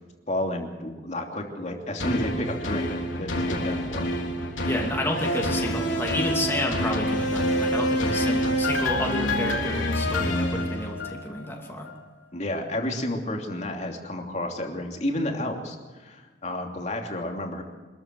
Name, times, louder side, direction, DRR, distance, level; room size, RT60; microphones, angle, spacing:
voice 1, 0.3-4.1 12.3-17.6, left 1 dB, 35° left, 2 dB, 2.9 m, -31 dB
sound 1, 2.0-11.4 11.9-12.0, equal, 85° left, 3.3 m, -27 dB
voice 2, 4.6-11.9, left 1 dB, 10° left, 0 dB, 2.7 m, -30 dB
26.0 x 14.0 x 7.8 m, 1.4 s
head